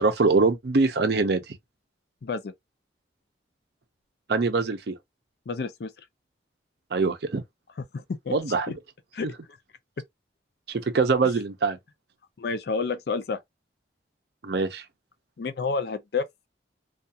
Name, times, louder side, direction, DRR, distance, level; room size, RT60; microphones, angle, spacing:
voice 1, 0.0-1.4 4.3-5.0 6.9-7.4 8.3-8.7 10.7-11.8 14.4-14.8, right 4 dB, 60° right, 0.5 m, -23 dB
voice 2, 2.2-2.5 5.5-6.1 7.9-8.4 8.7-8.8 9.1-9.3 12.4-13.4 15.4-16.3, left 4 dB, 55° left, 0.4 m, -30 dB
2.4 x 2.3 x 2.7 m
head